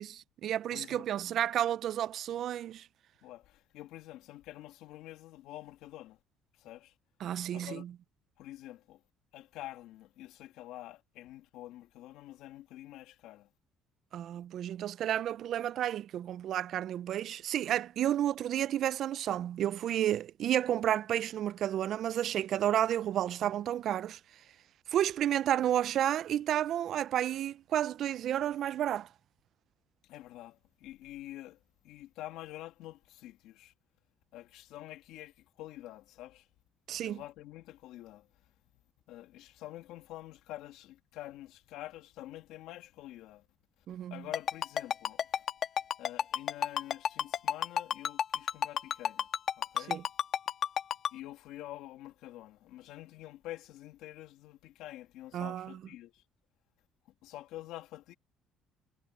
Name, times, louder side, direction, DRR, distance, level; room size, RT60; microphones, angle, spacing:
voice 1, 0.0-2.9 7.2-7.9 14.1-24.2 24.9-29.1 36.9-37.2 43.9-44.2 49.9-50.0 55.3-55.7, right 11 dB, 60° right, 0.4 m, -31 dB
voice 2, 0.7-1.1 3.2-6.2 6.6-6.9 7.5-7.9 8.4-9.0 9.3-13.5 30.1-31.6 31.8-33.7 34.3-36.5 37.0-38.5 39.1-43.4 43.9-45.4 46.0-49.3 49.6-50.0 51.1-56.2 57.2-58.1, left 15 dB, 80° left, 2.4 m, -47 dB
Ringtone, 44.3-51.1, left 8 dB, 50° left, 1.7 m, -30 dB
cardioid pair, 105°, 0 cm